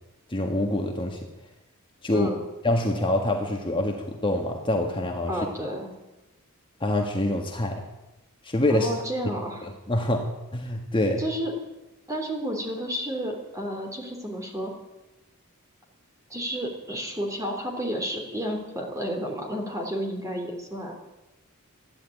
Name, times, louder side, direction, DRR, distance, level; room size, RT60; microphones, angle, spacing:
voice 1, 0.3-1.2 2.0-2.3 2.6-5.3 6.8-7.8 8.4-8.9 9.2-9.3 9.9-10.3 10.5-11.2, left 1 dB, 25° left, 2 dB, 1.6 m, -25 dB
voice 2, 5.3-5.9 8.7-9.6 11.2-11.5 12.1-14.7 16.3-20.9, equal, 15° right, 1 dB, 3.4 m, -31 dB
14.5 x 10.5 x 9.1 m, 1.0 s
head